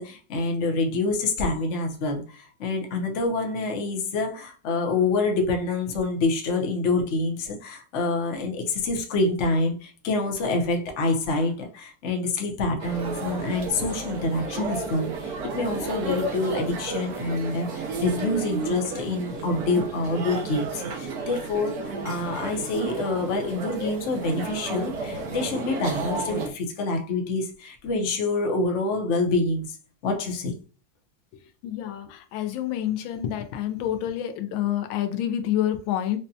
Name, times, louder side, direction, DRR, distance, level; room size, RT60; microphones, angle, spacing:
voice 1, 0.0-29.7 30.0-30.5, left 3 dB, 55° left, 0.9 m, -27 dB
sound 1, 12.8-26.5, right 3 dB, 60° right, 1.2 m, -32 dB
voice 2, 31.6-36.2, left 11 dB, 90° left, 1.4 m, -28 dB
5.2 x 2.2 x 2.7 m
omnidirectional pair, 2.1 m